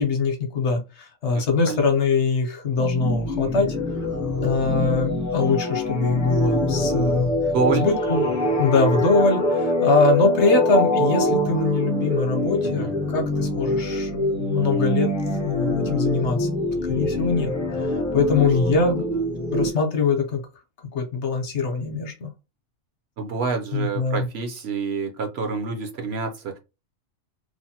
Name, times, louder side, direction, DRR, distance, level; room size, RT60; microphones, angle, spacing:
voice 1, 0.0-3.8 4.4-7.3 7.7-8.2 8.6-15.1 15.4-16.5 16.9-17.5 18.1-19.0 19.5-20.4 20.9-22.3 23.7-24.3, left 4 dB, 65° left, 0.9 m, -22 dB
voice 2, 1.3-1.8 7.5-7.9 12.6-12.9 18.3-19.2 23.2-26.6, right 5 dB, 60° right, 0.8 m, -28 dB
sound 1, 2.8-19.7, left 1 dB, 20° left, 0.5 m, -24 dB
3.2 x 2.1 x 2.7 m
omnidirectional pair, 1.4 m